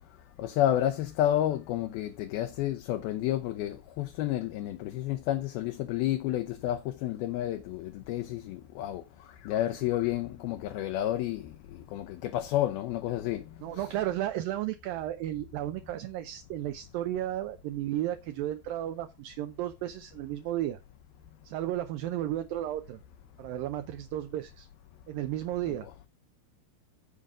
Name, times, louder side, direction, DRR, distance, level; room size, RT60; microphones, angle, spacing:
voice 1, 0.4-9.0 9.5-11.5 11.9-13.4 13.8-13.9, left 12 dB, 75° left, 2.5 m, -30 dB
voice 2, 13.6-20.8 21.5-23.0 23.4-24.7 25.1-25.9, right 13 dB, 80° right, 2.1 m, -33 dB
14.0 x 5.1 x 3.7 m
omnidirectional pair, 4.8 m